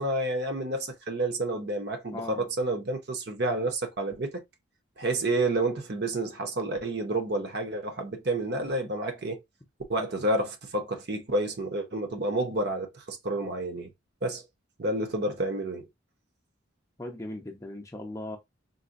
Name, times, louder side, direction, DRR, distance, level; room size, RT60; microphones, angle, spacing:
voice 1, 0.0-4.4 5.0-9.4 9.9-13.9 14.2-14.4 14.8-15.9, right 2 dB, 50° right, 0.7 m, -29 dB
voice 2, 2.1-2.5 17.0-18.4, left 1 dB, 15° left, 0.5 m, -38 dB
3.9 x 2.1 x 2.5 m
head